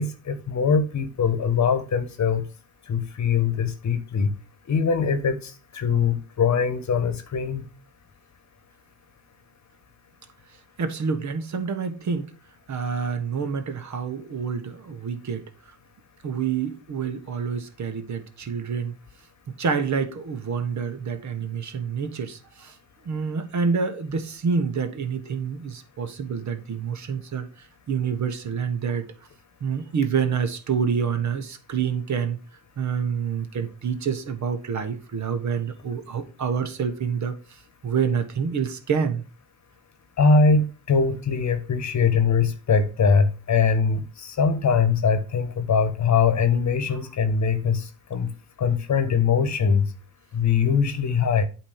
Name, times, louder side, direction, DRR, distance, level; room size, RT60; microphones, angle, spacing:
voice 1, 0.0-2.5 2.9-4.3 4.7-7.7 40.2-48.3 48.6-49.9 50.3-51.4, left 5 dB, 40° left, 1.3 m, -22 dB
voice 2, 10.8-12.3 12.7-15.4 16.2-18.9 19.6-22.8 23.0-29.0 29.6-32.4 32.8-37.4 37.8-39.2, right 6 dB, 40° right, 1.4 m, -27 dB
8.5 x 3.1 x 6.4 m
hypercardioid pair, 70°, 43 cm